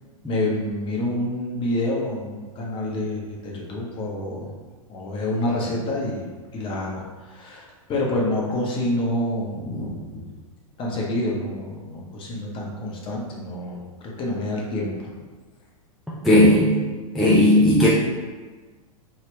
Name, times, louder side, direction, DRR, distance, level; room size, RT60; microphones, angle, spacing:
voice 1, 0.3-4.5 4.9-10.2 10.8-13.8 14.2-15.1, left 1 dB, 30° left, -3 dB, 0.8 m, -27 dB
voice 2, 16.2-16.8 17.1-17.9, left 1 dB, ahead, -7 dB, 0.3 m, -15 dB
2.9 x 2.8 x 3.1 m, 1.4 s
hypercardioid pair, 110°, 18 cm